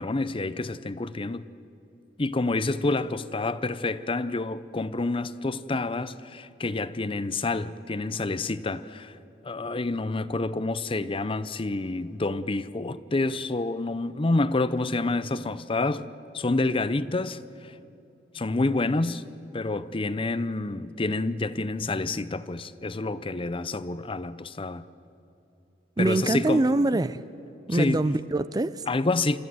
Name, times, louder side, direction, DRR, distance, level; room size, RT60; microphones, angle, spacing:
voice 1, 0.0-1.4 2.2-9.2 9.4-16.1 16.3-17.7 18.3-19.2 19.5-24.8 26.0-26.7 27.7-28.1 28.9-29.4, left 2 dB, 30° left, 0.6 m, -28 dB
voice 2, 26.0-27.2 27.7-28.8, right 2 dB, 20° right, 0.4 m, -24 dB
27.5 x 14.0 x 9.4 m
head